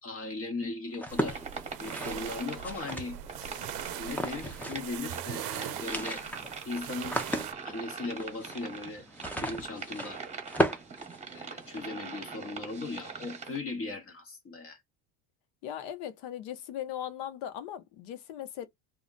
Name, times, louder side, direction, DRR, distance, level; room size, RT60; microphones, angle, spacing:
voice 1, 0.0-1.4 1.8-3.2 4.0-6.2 6.6-7.2 7.7-9.1 9.3-10.2 11.2-14.8, left 3 dB, 35° left, 0.9 m, -38 dB
sound 1, 0.9-3.5 4.1-5.0 5.2-5.3 5.6-11.8, equal, 5° left, 0.5 m, -35 dB
sound 2, 1.1-7.5, right 13 dB, 60° right, 0.6 m, -41 dB
sound 3, 1.2-13.6, right 5 dB, 15° right, 1.0 m, -42 dB
voice 2, 15.6-18.7, left 10 dB, 75° left, 0.9 m, -38 dB
2.3 x 2.1 x 3.8 m
cardioid pair, 120°, 40 cm